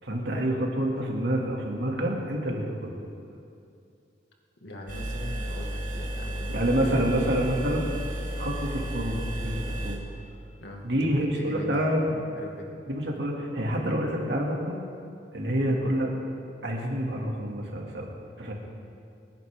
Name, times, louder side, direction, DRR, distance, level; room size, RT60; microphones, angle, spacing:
voice 1, 0.0-2.9 6.5-7.9 8.4-10.0 10.8-12.2 12.9-14.8 15.3-16.1 16.6-18.1 18.4-18.5, right 1 dB, 75° right, -1 dB, 2.6 m, -27 dB
voice 2, 4.6-7.1 10.6-11.9 12.4-12.8, left 1 dB, 80° left, 0 dB, 2.1 m, -41 dB
sound 1, 4.9-10.0, right 1 dB, 50° right, 2.8 m, -33 dB
27.0 x 11.0 x 3.8 m, 2.5 s
head